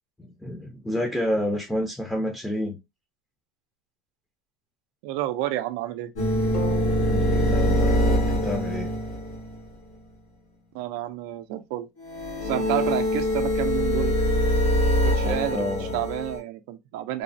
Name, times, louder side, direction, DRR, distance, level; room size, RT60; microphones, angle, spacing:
voice 1, 0.2-2.8 7.1-8.9 15.2-16.0, left 1 dB, 5° left, 0.6 m, -29 dB
voice 2, 5.0-6.1 10.7-11.9 12.4-14.1 15.0-17.2, right 14 dB, 75° right, 0.4 m, -30 dB
sound 1, 6.1-9.7 12.0-16.4, equal, 85° left, 1.5 m, -24 dB
sound 2, 6.5-10.6, left 2 dB, 60° left, 1.9 m, -41 dB
3.2 x 2.0 x 2.6 m
supercardioid pair, 115°, 0 cm